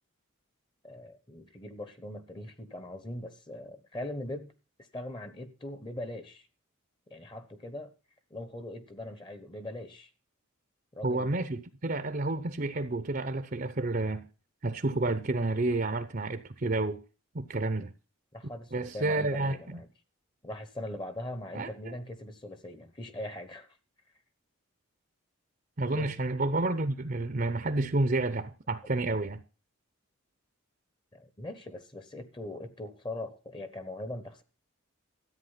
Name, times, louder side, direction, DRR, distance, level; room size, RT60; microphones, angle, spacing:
voice 1, 0.8-4.5 4.8-6.5 7.1-7.9 8.3-10.1 10.9-11.4 18.3-19.9 20.4-23.7 25.9-26.1 31.1-34.4, left 1 dB, 20° left, 1.0 m, -41 dB
voice 2, 11.0-14.2 14.6-17.0 17.3-17.9 18.7-19.8 21.5-22.0 25.8-29.4, right 2 dB, 40° right, 0.7 m, -30 dB
13.5 x 8.7 x 5.7 m
head